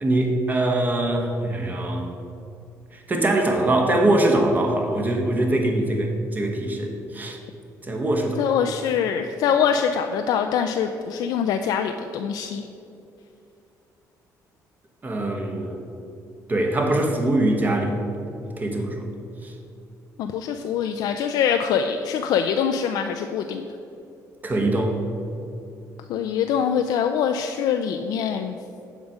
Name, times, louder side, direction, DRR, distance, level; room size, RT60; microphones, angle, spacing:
voice 1, 0.0-2.1 2.9-7.4 7.8-8.4 15.0-15.8 16.5-18.0 18.4-19.1 19.4-19.5 24.4-25.0, right 1 dB, 25° right, 3 dB, 1.2 m, -23 dB
voice 2, 8.4-12.6 20.2-23.7 26.1-28.6, left 7 dB, 80° left, 6 dB, 0.4 m, -24 dB
7.3 x 5.1 x 7.2 m, 2.7 s
cardioid pair, 125°, 7 cm